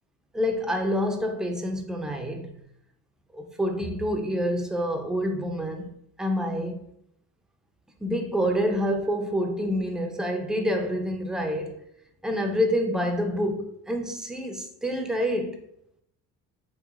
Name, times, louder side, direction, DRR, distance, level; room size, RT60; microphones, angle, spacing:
voice 1, 0.3-2.5 3.3-5.9 6.2-6.8 8.0-11.8 12.2-15.6, equal, ahead, 0.4 m, -27 dB
3.2 x 3.0 x 2.3 m
supercardioid pair, 75°, 41 cm